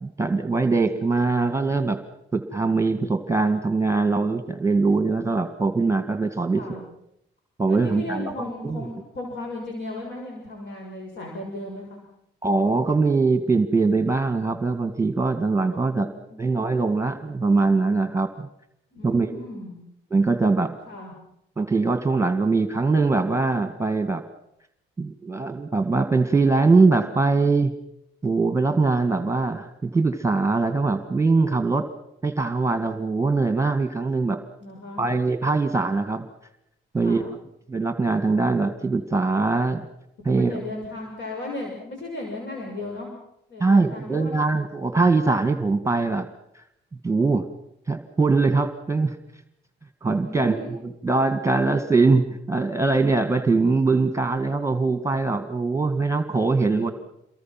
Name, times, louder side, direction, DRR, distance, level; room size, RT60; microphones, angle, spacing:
voice 1, 0.0-2.0 2.3-6.9 7.6-8.9 12.4-16.1 16.4-18.5 19.0-19.4 20.1-20.8 21.6-24.2 25.0-27.7 28.2-31.9 32.2-34.4 35.0-36.3 36.9-37.4 37.7-39.9 40.2-40.6 43.6-46.3 46.6-46.7 47.0-47.5 47.9-49.2 50.0-56.9, right 3 dB, 15° right, 8 dB, 2.0 m, -22 dB
voice 2, 7.7-12.0 15.7-16.5 18.9-19.8 20.9-21.1 34.6-35.1 37.0-37.3 40.3-43.1 43.5-44.3 50.2-50.7 56.6-56.9, left 2 dB, 65° left, 0 dB, 6.5 m, -35 dB
28.5 x 22.0 x 6.0 m, 0.79 s
cardioid pair, 90°, 20 cm